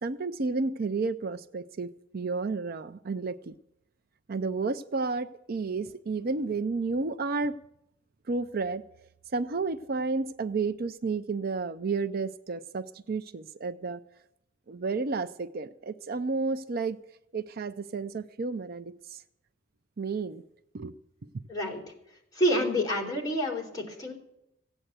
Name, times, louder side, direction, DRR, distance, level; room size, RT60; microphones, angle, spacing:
voice 1, 0.0-3.5 4.3-7.5 8.3-8.8 9.3-14.0 14.7-17.0 17.3-19.2 20.0-20.4 20.7-20.9, right 4 dB, 50° right, 12 dB, 0.5 m, -31 dB
voice 2, 21.5-21.8 22.3-24.1, equal, 20° left, -2 dB, 3.6 m, -28 dB
15.5 x 9.0 x 8.1 m, 0.80 s
head